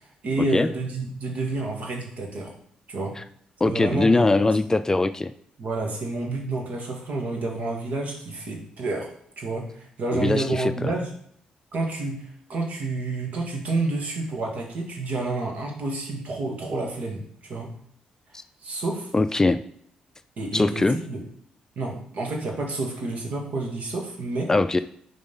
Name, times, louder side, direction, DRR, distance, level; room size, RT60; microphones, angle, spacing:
voice 1, 0.2-2.5 2.9-3.1 3.7-4.2 5.6-9.1 9.4-11.1 11.7-17.7 18.6-19.1 20.4-21.2 21.8-24.5, right 2 dB, 65° right, 1 dB, 1.8 m, -29 dB
voice 2, 3.6-5.3 10.1-10.7 19.1-19.6 20.5-21.0 24.5-24.8, left 2 dB, 20° left, 11 dB, 0.4 m, -21 dB
5.3 x 3.9 x 5.5 m, 0.64 s
cardioid pair, 75°, 3 cm